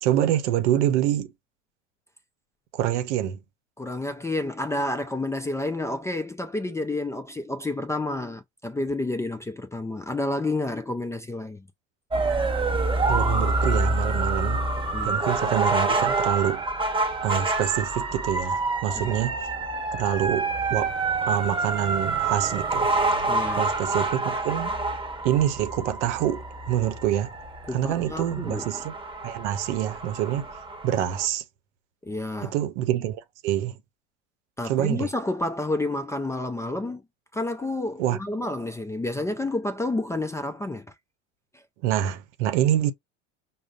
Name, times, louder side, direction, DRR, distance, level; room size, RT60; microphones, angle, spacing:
voice 1, 0.0-1.3 2.7-3.4 13.1-14.6 15.0-16.6 17.2-19.5 19.9-20.9 21.3-22.9 23.5-24.8 25.2-27.3 27.7-28.9 29.2-30.5 30.8-31.4 32.4-33.8 34.6-35.1 38.0-38.2 41.8-42.9, right 11 dB, 75° right, 0.8 m, -26 dB
voice 2, 3.8-11.7 14.9-15.2 19.0-19.2 23.3-23.7 27.7-28.8 32.0-32.6 34.6-37.0 37.3-40.9 41.5-41.6, left 2 dB, 10° left, 0.3 m, -30 dB
sound 1, 12.1-31.3, right 3 dB, 15° right, 1.3 m, -27 dB
5.0 x 2.1 x 2.4 m
hypercardioid pair, 95°, 35 cm